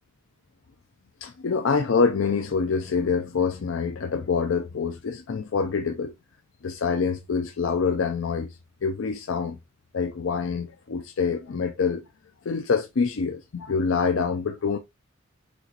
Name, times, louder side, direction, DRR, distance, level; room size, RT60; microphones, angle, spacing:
voice 1, 1.2-6.1 6.6-8.5 8.8-9.6 9.9-12.0 12.5-14.8, left 5 dB, 80° left, 0.5 m, -26 dB
6.1 x 3.0 x 2.9 m
head